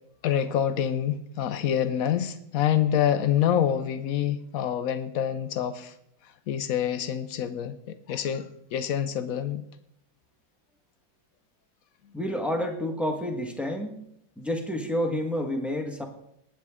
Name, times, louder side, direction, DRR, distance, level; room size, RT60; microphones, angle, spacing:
voice 1, 0.2-5.9 6.5-9.6, left 9 dB, 85° left, 0.7 m, -26 dB
voice 2, 12.1-14.0 14.4-16.0, left 1 dB, ahead, 0.9 m, -29 dB
19.5 x 8.8 x 3.6 m
omnidirectional pair, 2.3 m